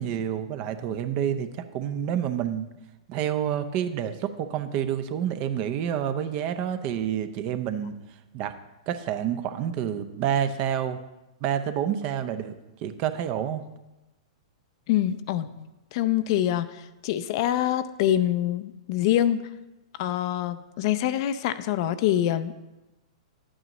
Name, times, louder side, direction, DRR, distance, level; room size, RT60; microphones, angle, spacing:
voice 1, 0.0-2.7 3.1-8.0 8.3-8.5 8.9-11.0 11.4-12.5 12.8-13.6, right 9 dB, 40° right, 10 dB, 0.6 m, -28 dB
voice 2, 14.9-15.5 15.9-19.4 20.0-22.7, left 12 dB, 50° left, 12 dB, 0.5 m, -25 dB
10.5 x 8.7 x 3.0 m, 1.0 s
hypercardioid pair, 110°, 3 cm